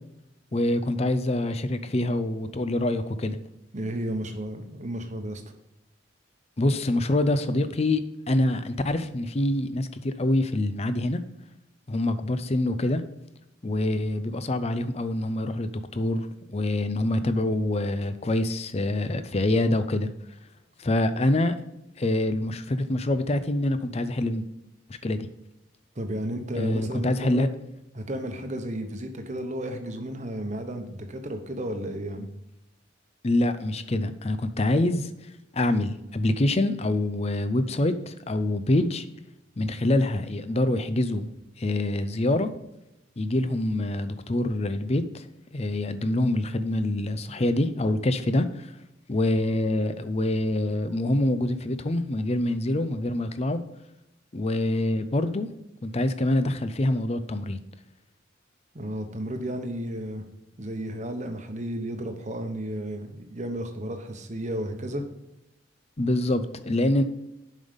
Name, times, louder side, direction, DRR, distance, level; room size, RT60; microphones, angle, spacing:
voice 1, 0.5-3.4 6.6-11.2 11.9-13.0 13.6-20.1 20.8-21.6 22.0-24.5 25.0-25.3 26.5-27.5 33.2-39.0 39.6-41.3 41.6-42.5 43.2-45.3 45.5-48.7 49.1-53.6 54.3-55.5 55.8-57.6 66.0-67.0, left 1 dB, 30° left, 11 dB, 0.5 m, -25 dB
voice 2, 3.7-5.4 26.0-27.4 27.9-32.3 58.7-60.2 60.6-65.0, right 1 dB, 35° right, 6 dB, 1.0 m, -33 dB
7.4 x 5.5 x 5.2 m, 0.91 s
head